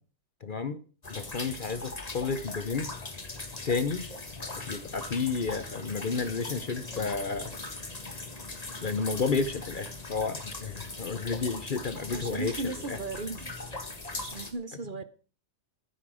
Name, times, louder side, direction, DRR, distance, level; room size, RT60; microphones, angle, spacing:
voice 1, 0.4-0.8 1.1-2.9 3.6-4.1 4.4-7.6 8.8-13.0, left 4 dB, 45° left, 13 dB, 0.8 m, -31 dB
sound 1, 1.0-14.5, left 3 dB, 30° left, 1.8 m, -40 dB
voice 2, 12.1-13.6 14.2-15.0, right 3 dB, 45° right, 13 dB, 0.9 m, -36 dB
13.5 x 9.9 x 6.2 m, 0.39 s
omnidirectional pair, 1.4 m